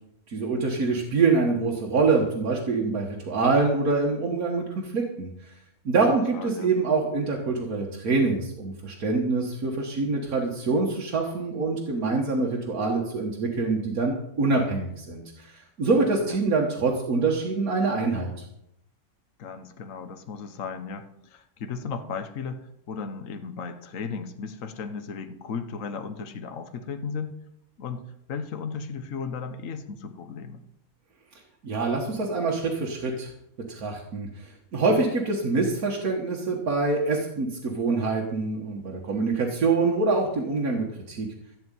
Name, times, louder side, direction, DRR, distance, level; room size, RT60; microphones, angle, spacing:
voice 1, 0.3-5.5 5.9-18.3 31.6-33.3 33.7-41.3, right 3 dB, 80° right, -1 dB, 2.1 m, -25 dB
voice 2, 6.3-6.7 16.2-16.4 19.4-27.4 27.8-30.6, left 5 dB, 65° left, 8 dB, 1.4 m, -35 dB
15.5 x 5.3 x 9.2 m, 0.77 s
omnidirectional pair, 1.5 m